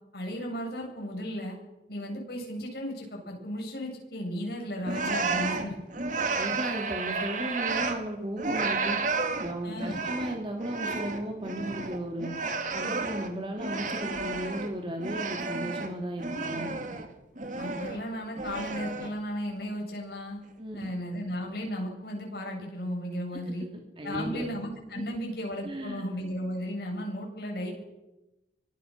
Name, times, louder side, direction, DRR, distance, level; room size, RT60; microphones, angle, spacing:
voice 1, 0.1-1.6 1.9-5.7 9.6-10.0 17.6-20.4 20.7-23.7 24.0-27.7, equal, 60° left, 0 dB, 8.0 m, -35 dB
sound 1, 4.8-8.1 8.4-14.7 15.0-17.1 17.4-18.0 18.4-19.2, right 3 dB, 45° right, 2.2 m, -32 dB
voice 2, 6.4-9.0 9.4-12.3 12.7-16.7 20.6-20.9 24.0-24.4 24.9-25.0 25.6-26.0, right 1 dB, 30° right, 2 dB, 2.6 m, -35 dB
25.0 x 21.0 x 6.7 m, 1.0 s
head